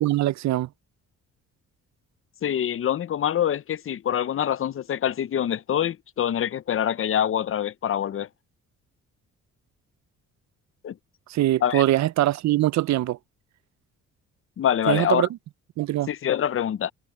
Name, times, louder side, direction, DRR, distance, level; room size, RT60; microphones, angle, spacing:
voice 1, 0.0-0.7 11.3-13.2 14.9-15.3 15.8-16.1, right 15 dB, 65° right, 0.6 m, -22 dB
voice 2, 2.4-8.3 10.8-10.9 11.6-11.8 14.6-15.3 16.1-16.9, left 10 dB, 45° left, 0.6 m, -25 dB
cardioid pair, 90°, 30 cm